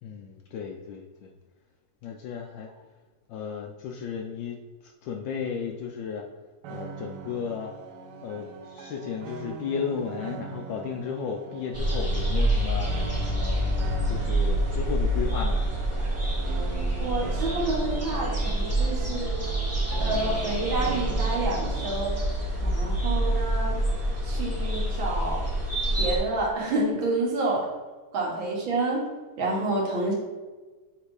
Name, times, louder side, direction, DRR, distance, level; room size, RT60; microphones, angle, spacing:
voice 1, 0.0-1.3 2.0-2.7 3.3-6.3 6.7-7.7 8.2-12.9 13.4-13.7 14.1-15.6, left 6 dB, 75° left, 2 dB, 1.1 m, -34 dB
sound 1, 6.6-22.1, right 5 dB, 90° right, 1.7 m, -40 dB
sound 2, 11.7-26.2, right 1 dB, 10° right, 1.1 m, -27 dB
voice 2, 17.0-19.4 20.0-22.2 22.6-23.8 24.2-25.5 26.0-27.7 28.1-29.1 29.4-30.1, right 2 dB, 65° right, -2 dB, 2.1 m, -28 dB
7.5 x 3.3 x 4.7 m, 1.3 s
omnidirectional pair, 2.4 m